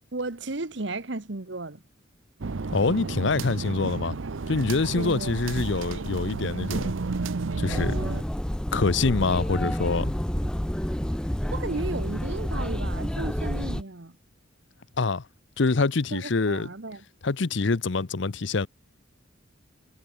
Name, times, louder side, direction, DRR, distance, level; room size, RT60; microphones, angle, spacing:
voice 1, 0.1-1.8 4.9-5.4 11.5-14.2 16.1-17.0, right 2 dB, 60° right, 1.3 m, -34 dB
sound 1, 2.4-8.2, right 3 dB, 75° right, 0.7 m, -32 dB
voice 2, 2.7-4.1 4.5-6.9 7.6-8.0 8.7-10.1 15.0-15.2 15.6-16.7 17.2-18.7, left 3 dB, 60° left, 0.7 m, -25 dB
sound 2, 7.7-13.8, equal, 5° left, 0.5 m, -29 dB
head